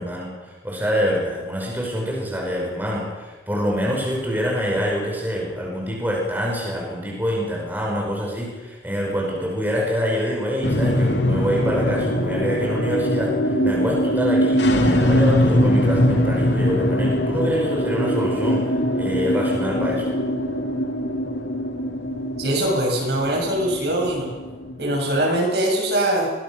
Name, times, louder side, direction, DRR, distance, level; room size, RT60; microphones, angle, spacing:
voice 1, 0.0-18.6 18.9-20.1, equal, 10° right, -2 dB, 5.5 m, -25 dB
sound 1, 10.6-25.3, equal, 85° left, 2.6 m, -22 dB
voice 2, 22.4-24.3 24.8-26.3, right 1 dB, 70° right, -1 dB, 7.2 m, -22 dB
22.5 x 20.0 x 6.6 m, 1.3 s
head